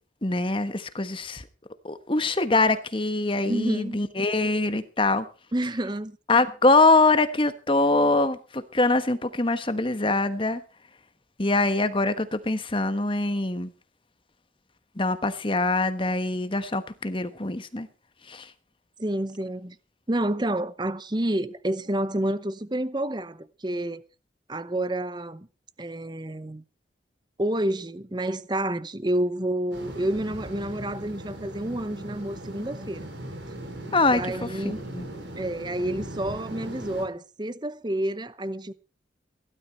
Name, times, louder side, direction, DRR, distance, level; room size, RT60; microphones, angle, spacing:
voice 1, 0.2-1.4 1.8-5.3 6.3-10.6 11.4-13.7 15.0-17.9 18.3-18.5 33.9-35.0, left 2 dB, 25° left, 1.2 m, -24 dB
voice 2, 3.5-4.0 5.5-6.2 19.0-19.8 20.1-24.0 24.5-25.5 25.8-26.6 27.4-33.1 34.1-34.8 35.4-38.7, right 1 dB, 25° right, 0.9 m, -29 dB
sound 1, 29.7-37.1, right 1 dB, 80° right, 6.4 m, -38 dB
17.0 x 12.0 x 4.4 m
head